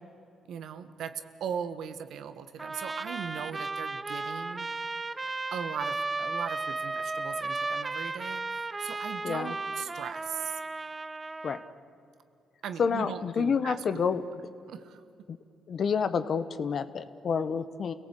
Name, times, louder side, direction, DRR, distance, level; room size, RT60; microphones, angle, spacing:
voice 1, 0.5-4.7 5.5-8.4 8.8-10.6 12.6-14.2 14.7-15.0, right 8 dB, 75° right, 10 dB, 1.4 m, -39 dB
Trumpet, 2.6-11.7, right 3 dB, 25° right, 0.7 m, -35 dB
voice 2, 9.2-9.5 11.4-11.6 12.8-14.2 15.3-15.4 15.7-17.9, left 6 dB, 55° left, 12 dB, 1.2 m, -28 dB
29.5 x 17.5 x 8.4 m, 2.6 s
cardioid pair, 90°, 0 cm